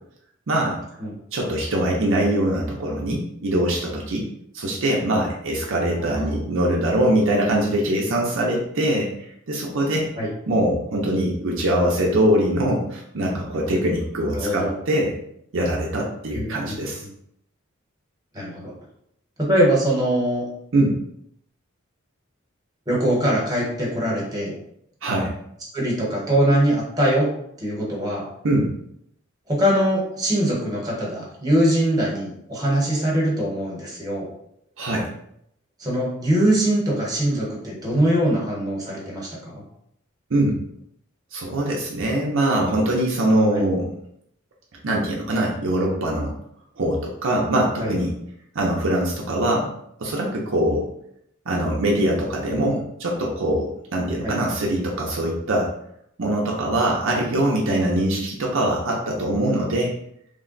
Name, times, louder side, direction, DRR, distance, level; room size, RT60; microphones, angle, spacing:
voice 1, 0.5-0.8 1.3-4.3 4.5-10.1 10.5-15.1 15.5-17.0 20.7-21.0 25.0-25.3 28.4-28.7 34.8-35.1 40.3-40.6 41.3-43.9 44.8-46.3 46.8-48.2 48.5-49.7 50.0-50.9 51.5-55.7 56.2-59.9, right 1 dB, 65° right, -2 dB, 0.6 m, -22 dB
voice 2, 5.9-6.3 10.2-10.3 14.3-14.8 16.3-16.8 18.3-18.7 19.4-20.4 22.9-24.5 25.7-27.3 27.6-28.3 29.5-34.3 35.8-39.6 43.5-43.6 47.8-47.9 54.2-54.3, right 1 dB, 20° right, -4 dB, 1.1 m, -22 dB
3.3 x 2.2 x 3.8 m, 0.73 s
head